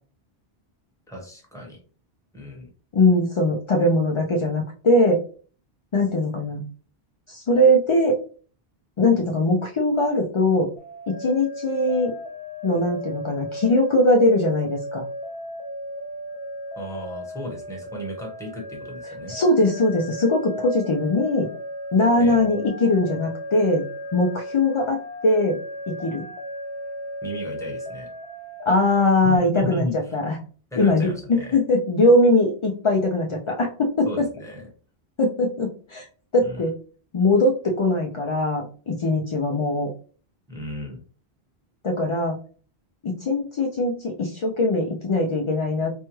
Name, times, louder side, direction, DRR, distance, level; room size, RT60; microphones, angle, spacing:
voice 1, 1.1-1.8 2.3-2.7 16.8-19.4 22.2-22.5 27.2-28.1 29.2-30.0 30.7-31.6 34.0-34.7 36.4-36.6 40.5-41.0, equal, 5° left, -1 dB, 1.0 m, -34 dB
voice 2, 2.9-5.2 5.9-6.6 7.3-8.2 9.0-10.7 11.1-12.1 12.6-15.0 19.3-21.5 21.9-23.9 24.1-25.6 25.9-26.2 28.7-29.8 30.1-30.4 30.8-34.3 35.2-36.1 36.3-36.7 37.1-39.9 41.8-42.4 43.0-45.9, left 1 dB, 55° left, 0 dB, 0.3 m, -21 dB
sound 1, 10.8-29.4, equal, 70° left, 1.0 m, -35 dB
4.3 x 2.3 x 3.0 m, 0.41 s
omnidirectional pair, 1.1 m